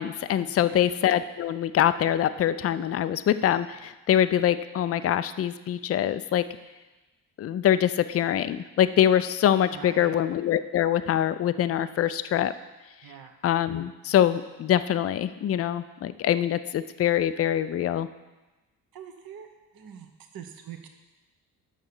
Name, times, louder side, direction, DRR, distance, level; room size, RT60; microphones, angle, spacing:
voice 1, 0.0-6.4 7.4-12.5 13.4-18.1, left 10 dB, 30° left, 13 dB, 0.5 m, -24 dB
voice 2, 9.7-10.2 13.0-13.3 18.9-20.9, right 8 dB, 50° right, 5 dB, 1.0 m, -44 dB
6.4 x 5.6 x 6.6 m, 1.1 s
hypercardioid pair, 40°, 47 cm